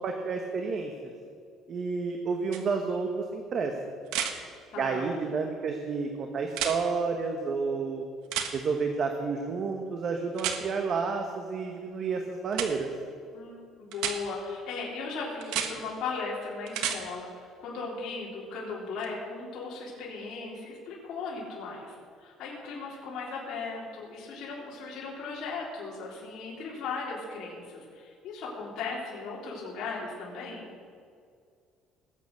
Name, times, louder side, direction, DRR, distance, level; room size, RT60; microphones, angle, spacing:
voice 1, 0.0-0.9 1.7-3.7 4.8-8.0 8.5-12.9, right 4 dB, 45° right, 4 dB, 1.3 m, -30 dB
sound 1, 2.5-2.6 4.1-4.3 6.5-6.8 8.3-8.5 10.4-10.6 12.5-12.7 13.9-14.2 15.4-15.7 16.7-17.0 19.0-19.1, right 9 dB, 90° right, 1.4 m, -30 dB
voice 2, 4.7-5.1 13.3-30.7, left 4 dB, 60° left, -4 dB, 3.6 m, -37 dB
19.5 x 8.3 x 6.8 m, 2.3 s
cardioid pair, 135°, 0 cm